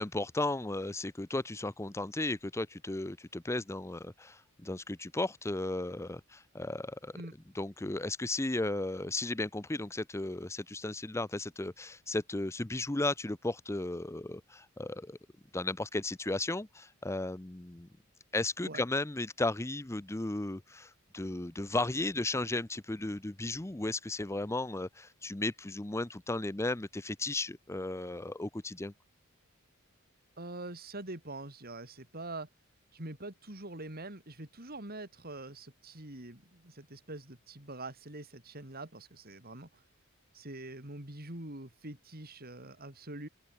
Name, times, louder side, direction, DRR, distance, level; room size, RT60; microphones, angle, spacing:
voice 1, 0.0-7.2 7.5-15.2 15.5-17.9 18.3-28.9, left 2 dB, 15° left, 0.6 m, -35 dB
voice 2, 30.4-32.5 32.9-39.8 40.3-43.3, right 2 dB, 45° right, 4.9 m, -44 dB
open air
head